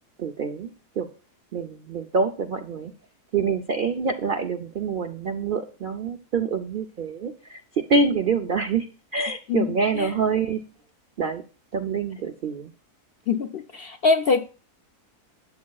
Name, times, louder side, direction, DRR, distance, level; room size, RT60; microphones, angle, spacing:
voice 1, 0.2-1.1 1.5-2.9 3.3-8.9 9.1-10.6 11.2-11.4 11.7-12.7, right 4 dB, 65° right, 0.5 m, -26 dB
voice 2, 13.3-14.5, left 4 dB, 65° left, 0.5 m, -23 dB
12.5 x 8.4 x 2.3 m
omnidirectional pair, 1.6 m